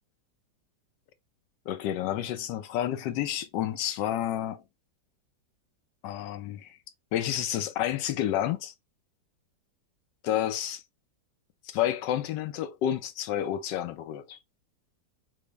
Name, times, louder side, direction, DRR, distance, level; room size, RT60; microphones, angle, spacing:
voice 1, 1.7-4.6 6.0-6.8 7.1-8.7 10.2-10.8 11.6-14.4, left 11 dB, 80° left, 1.2 m, -30 dB
4.1 x 2.0 x 3.3 m
omnidirectional pair, 1.9 m